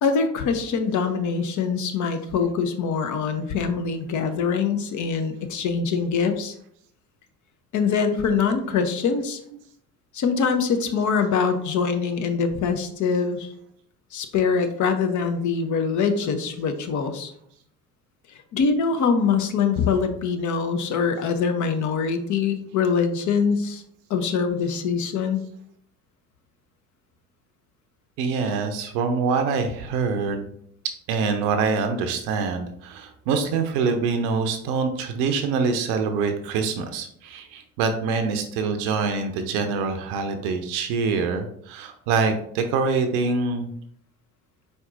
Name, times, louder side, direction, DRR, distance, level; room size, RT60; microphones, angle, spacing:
voice 1, 0.0-6.5 7.7-9.4 10.1-13.5 14.1-17.3 18.5-23.8 24.1-25.4, left 5 dB, 40° left, 7 dB, 0.7 m, -23 dB
voice 2, 28.2-30.4 31.1-43.7, right 4 dB, 55° right, 6 dB, 0.7 m, -25 dB
4.4 x 4.0 x 2.5 m, 0.68 s
figure-of-eight pair, 60°, 48 cm